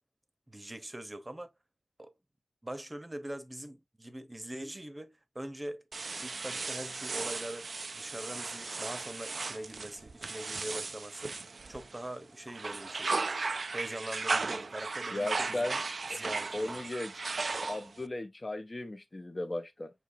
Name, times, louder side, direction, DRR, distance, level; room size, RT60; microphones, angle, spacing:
voice 1, 0.5-1.5 2.0-2.1 2.6-5.8 6.2-11.4 11.7-13.1 13.7-15.7 16.1-16.8, right 1 dB, 20° right, 0.9 m, -42 dB
sound 1, 5.9-12.1 12.5-18.1, right 4 dB, 65° right, 0.3 m, -36 dB
voice 2, 15.1-15.8 16.1-16.2 16.5-17.3 17.7-19.9, left 2 dB, 30° left, 0.6 m, -36 dB
6.4 x 3.0 x 2.6 m
wide cardioid pair, 85°, 0 cm